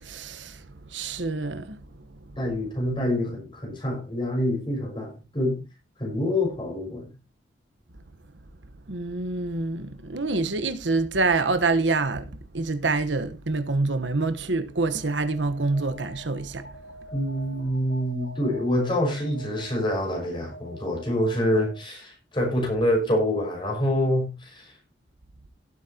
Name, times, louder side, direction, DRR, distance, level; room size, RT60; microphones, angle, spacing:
voice 1, 0.0-1.8 8.9-16.7, right 3 dB, 90° right, 1.2 m, -26 dB
voice 2, 2.4-5.6 6.0-7.1 17.1-24.7, left 1 dB, 25° left, 5.7 m, -26 dB
Alarm, 14.9-21.9, right 1 dB, 75° left, 2.1 m, -45 dB
17.5 x 8.2 x 2.9 m
head